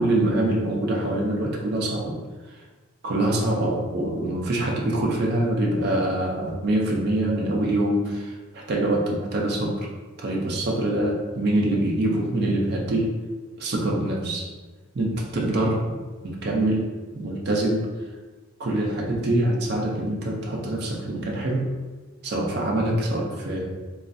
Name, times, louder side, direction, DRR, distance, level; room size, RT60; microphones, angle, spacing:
voice 1, 0.0-2.2 3.0-9.9 10.2-13.1 13.6-14.5 14.9-16.0 16.2-16.9 17.1-17.9 18.6-21.7 22.2-23.6, right 1 dB, 45° right, -1 dB, 0.4 m, -24 dB
3.1 x 2.3 x 2.5 m, 1.3 s
head